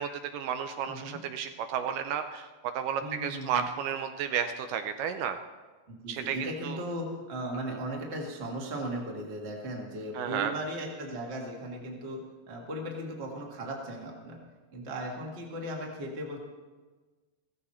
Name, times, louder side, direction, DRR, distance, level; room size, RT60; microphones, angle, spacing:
voice 1, 0.0-2.5 2.8-5.4 6.1-6.8 10.1-10.5, right 8 dB, 80° right, 8 dB, 2.0 m, -32 dB
voice 2, 0.9-1.2 3.0-3.6 5.9-14.4 14.7-16.4, right 1 dB, 25° right, -1 dB, 1.5 m, -37 dB
16.0 x 15.0 x 4.4 m, 1.3 s
omnidirectional pair, 4.2 m